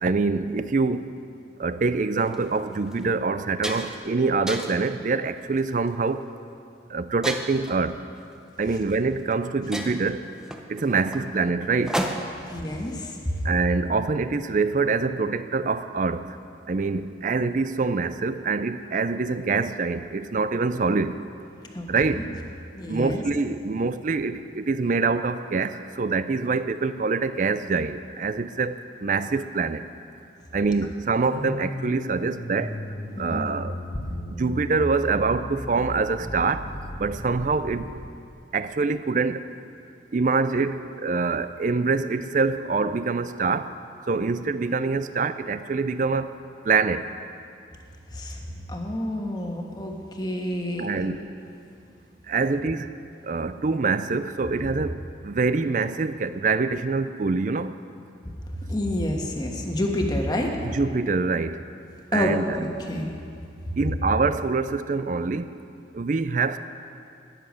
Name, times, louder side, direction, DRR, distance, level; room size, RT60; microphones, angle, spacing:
voice 1, 0.0-1.1 1.6-6.3 6.9-8.0 8.6-10.3 10.7-12.1 13.4-16.4 16.7-21.2 21.9-22.3 22.9-29.8 30.5-32.8 33.2-33.8 34.3-36.7 37.0-37.9 38.5-39.5 40.1-43.7 44.1-46.4 46.6-47.1 50.8-51.3 52.3-52.9 53.2-57.8 60.6-61.6 62.1-62.6 63.8-65.5 65.9-66.6, right 4 dB, 45° right, 13 dB, 0.4 m, -25 dB
sound 1, 2.2-2.4 2.9-3.0 3.3-4.1 4.5-4.9 5.6-5.9 7.2-7.8 8.9-9.0 9.3-9.4 9.7-12.5, equal, 5° right, 0.6 m, -32 dB
voice 2, 12.5-13.3 21.7-21.8 22.1-22.2 22.7-23.2 33.2-33.5 48.1-48.4 48.7-51.2 58.7-60.5 62.1-63.1 63.7-63.8, left 1 dB, 20° left, 1 dB, 1.3 m, -28 dB
sound 2, 31.3-38.1, equal, 75° left, 2.5 m, -36 dB
13.5 x 10.0 x 6.3 m, 2.5 s
head